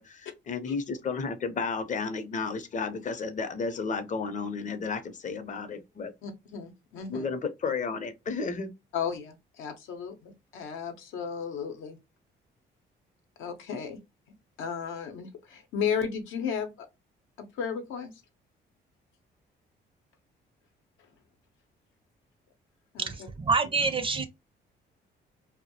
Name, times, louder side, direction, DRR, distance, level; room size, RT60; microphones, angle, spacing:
voice 1, 0.0-6.1 7.1-8.7, left 4 dB, 40° left, 0.5 m, -32 dB
voice 2, 6.2-7.3 8.9-12.0 13.4-14.0 14.6-16.9 17.4-18.1 22.9-23.1, left 7 dB, 85° left, 0.7 m, -34 dB
voice 3, 23.4-24.3, right 4 dB, 25° right, 0.4 m, -26 dB
2.2 x 2.0 x 2.7 m
cardioid pair, 90°, 20 cm